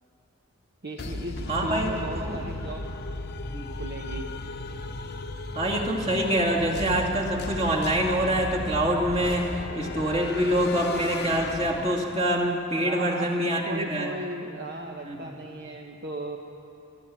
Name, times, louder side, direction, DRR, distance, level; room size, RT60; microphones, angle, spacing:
voice 1, 0.8-2.9 3.7-4.3 12.8-16.4, right 2 dB, 50° right, 2 dB, 1.1 m, -36 dB
sound 1, 1.0-12.4, left 2 dB, 45° left, 0.9 m, -35 dB
voice 2, 1.5-2.4 3.5-3.7 5.5-14.1 15.0-15.2, right 1 dB, 30° right, -2 dB, 2.5 m, -25 dB
23.0 x 14.0 x 8.8 m, 2.9 s
head